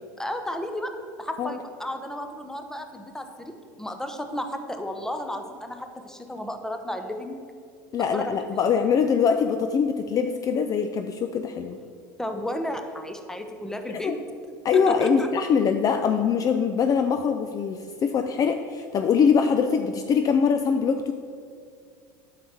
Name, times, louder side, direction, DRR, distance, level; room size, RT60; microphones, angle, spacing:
voice 1, 0.2-7.4 8.1-8.3 8.7-8.8 12.2-14.1 14.4-15.3, left 1 dB, 5° left, 6 dB, 0.8 m, -33 dB
voice 2, 7.9-11.8 14.0-14.2 14.6-21.1, left 6 dB, 35° left, 7 dB, 0.4 m, -23 dB
9.1 x 6.6 x 4.4 m, 2.2 s
hypercardioid pair, 90°, 11 cm